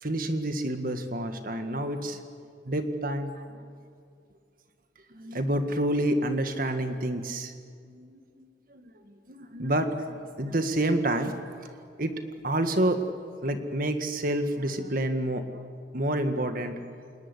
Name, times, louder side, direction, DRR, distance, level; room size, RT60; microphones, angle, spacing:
voice 1, 0.0-2.2 2.7-3.7 5.1-7.5 7.8-11.3 12.0-12.1 12.4-13.0 13.4-15.5 15.9-16.8, right 1 dB, 45° right, 7 dB, 1.9 m, -29 dB
29.0 x 19.0 x 9.9 m, 2.3 s
head